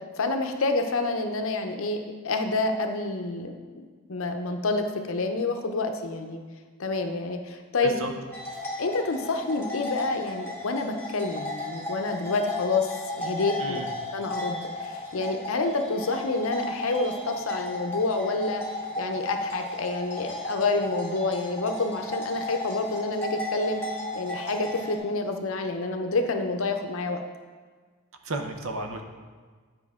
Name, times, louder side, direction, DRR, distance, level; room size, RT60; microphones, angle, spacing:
voice 1, 0.2-6.4 6.8-7.9 8.8-12.9 13.1-13.8 14.1-18.6 19.0-23.8 24.1-27.2, left 3 dB, 65° left, 6 dB, 0.7 m, -28 dB
sound 1, 8.3-25.0, left 1 dB, 10° left, 1.0 m, -35 dB
voice 2, 13.6-13.9 28.2-29.0, right 2 dB, 65° right, 5 dB, 0.7 m, -33 dB
9.4 x 5.2 x 3.6 m, 1.5 s
head